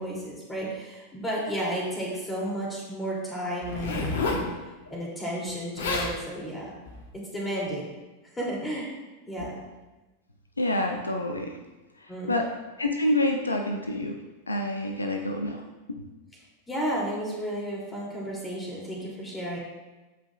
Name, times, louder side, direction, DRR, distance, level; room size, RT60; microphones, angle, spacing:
voice 1, 0.0-4.5 4.9-6.7 7.3-7.9 8.3-8.9 9.3-9.6 12.1-12.4 16.7-19.6, right 1 dB, 15° left, -4 dB, 2.6 m, -32 dB
Zipper (clothing), 3.6-4.5 5.5-5.6 5.8-6.1 6.9-7.1, left 3 dB, 60° left, 1.1 m, -29 dB
voice 2, 10.6-11.6 12.0-12.5 12.8-14.2 14.5-16.0, left 1 dB, 80° left, 4 dB, 0.6 m, -28 dB
14.0 x 5.1 x 2.3 m, 1.1 s
figure-of-eight pair, 90°, 0 cm